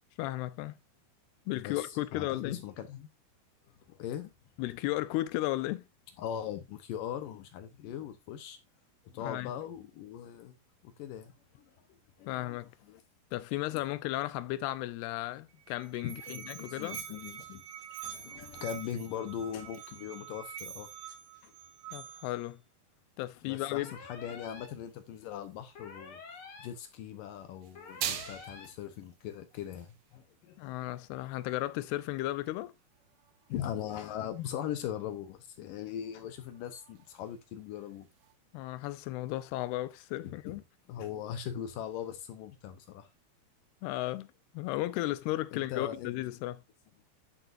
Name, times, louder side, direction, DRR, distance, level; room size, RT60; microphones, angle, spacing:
voice 1, 0.2-0.8 1.5-2.6 4.6-5.8 9.2-9.5 12.3-12.7 13.3-17.0 21.9-22.6 23.2-23.9 30.6-32.7 38.5-40.6 43.8-46.6, left 17 dB, 85° left, 2.7 m, -35 dB
voice 2, 1.6-3.1 3.9-4.3 6.2-8.6 9.1-10.5 10.8-11.7 12.2-13.0 13.7-13.8 16.0-17.6 18.0-20.9 21.4-21.5 23.4-26.2 26.6-30.9 33.5-38.1 40.2-40.6 40.9-43.1 45.5-46.1, left 9 dB, 70° left, 2.2 m, -40 dB
Musical instrument, 15.5-22.5, right 9 dB, 70° right, 2.5 m, -46 dB
sound 1, 23.4-38.3, right 10 dB, 90° right, 1.5 m, -48 dB
sound 2, 23.8-24.7 25.8-26.7 27.8-28.7, left 4 dB, 45° left, 2.1 m, -48 dB
11.5 x 6.7 x 2.5 m
omnidirectional pair, 4.6 m